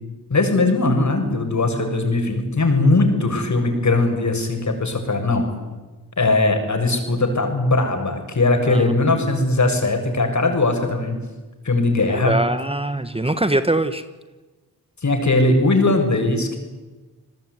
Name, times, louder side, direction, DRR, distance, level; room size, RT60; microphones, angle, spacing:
voice 1, 0.3-5.5 6.2-11.2 11.6-12.4 15.0-16.6, left 2 dB, 45° left, 5 dB, 7.2 m, -19 dB
voice 2, 8.7-9.2 12.1-14.0, right 1 dB, 15° right, 11 dB, 1.6 m, -23 dB
29.0 x 19.0 x 9.7 m, 1.2 s
cardioid pair, 55°, 38 cm